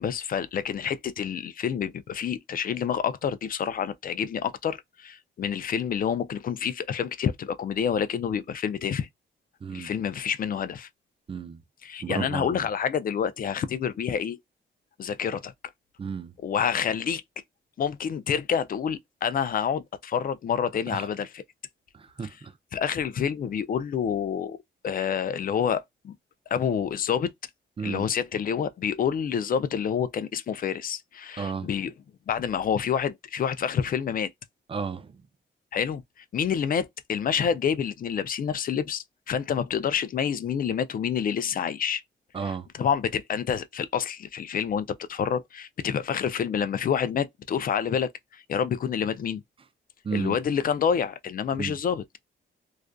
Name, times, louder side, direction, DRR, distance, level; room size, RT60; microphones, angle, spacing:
voice 1, 0.0-9.1 9.7-10.9 11.8-14.4 15.0-15.5 16.4-17.2 17.8-21.4 22.7-24.6 24.8-26.1 26.5-27.3 27.8-31.9 32.3-34.3 35.7-42.0 42.8-49.4 50.1-52.0, left 7 dB, 45° left, 0.4 m, -28 dB
voice 2, 11.3-11.6 12.0-12.7 16.0-16.3 20.9-21.1 21.9-22.6 27.8-28.1 31.4-31.7 34.7-35.2 42.3-42.7 50.0-50.4 51.6-51.8, right 5 dB, 30° right, 0.4 m, -33 dB
2.4 x 2.4 x 2.2 m
cardioid pair, 90°, 20 cm